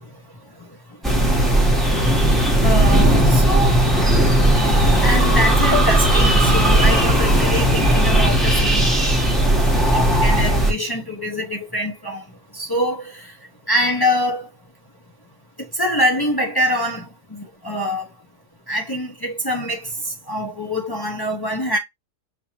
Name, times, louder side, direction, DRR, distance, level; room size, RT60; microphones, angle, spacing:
sound 1, 1.0-10.7, right 1 dB, ahead, 0.9 m, -16 dB
voice 1, 2.6-3.8 5.0-8.9 9.9-12.2 12.5-13.3 13.7-14.5 15.6-18.1 18.7-19.9 20.3-21.8, equal, 25° left, 0.5 m, -24 dB
6.1 x 2.7 x 2.9 m
omnidirectional pair, 1.6 m